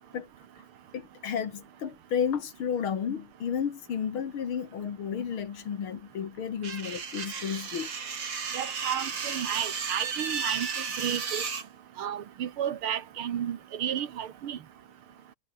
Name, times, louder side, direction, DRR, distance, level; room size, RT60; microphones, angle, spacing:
voice 1, 0.9-7.9, left 7 dB, 75° left, 2.7 m, -32 dB
sound 1, 6.6-11.6, right 6 dB, 60° right, 3.1 m, -34 dB
voice 2, 8.5-10.7 11.0-11.4 12.0-14.6, right 9 dB, 75° right, 2.2 m, -32 dB
omnidirectional pair, 2.4 m